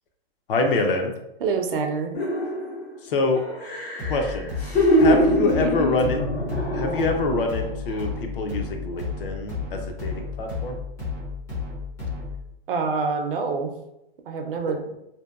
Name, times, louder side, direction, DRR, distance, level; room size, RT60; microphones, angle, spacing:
voice 1, 0.5-1.1 3.0-3.4 4.1-4.5 5.0-6.2 6.7-10.8, left 3 dB, 60° left, 3 dB, 0.6 m, -25 dB
voice 2, 1.4-2.1 5.2-5.7 12.7-13.7 14.3-14.9, right 5 dB, 60° right, 3 dB, 0.5 m, -26 dB
sound 1, 2.1-2.9 3.3-7.5 7.9-8.1, equal, 85° left, 1.1 m, -23 dB
sound 2, 4.0-12.5, left 4 dB, 10° left, 0.4 m, -33 dB
2.7 x 2.2 x 2.3 m, 0.86 s
hypercardioid pair, 145°, 31 cm